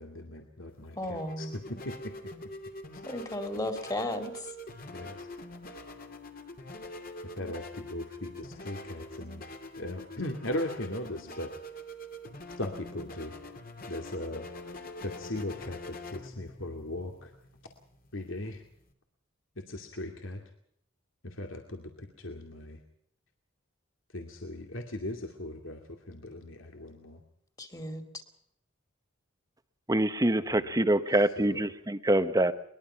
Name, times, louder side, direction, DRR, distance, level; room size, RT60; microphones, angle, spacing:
voice 1, 0.0-2.1 4.9-5.3 7.4-9.4 9.8-11.5 12.6-13.3 13.9-14.5 15.0-17.3 18.1-18.6 19.6-20.4 21.2-22.8 24.1-27.2 30.5-30.8 31.4-31.6, left 1 dB, 75° left, 3 dB, 2.5 m, -38 dB
sound 1, 0.7-18.9, left 1 dB, 45° left, 2.6 m, -44 dB
voice 2, 1.0-1.5 3.1-4.3 27.6-28.1, left 1 dB, 20° left, 6 dB, 2.7 m, -34 dB
voice 3, 29.9-32.5, right 1 dB, 20° right, 11 dB, 1.0 m, -25 dB
22.5 x 21.5 x 5.8 m, 0.68 s
head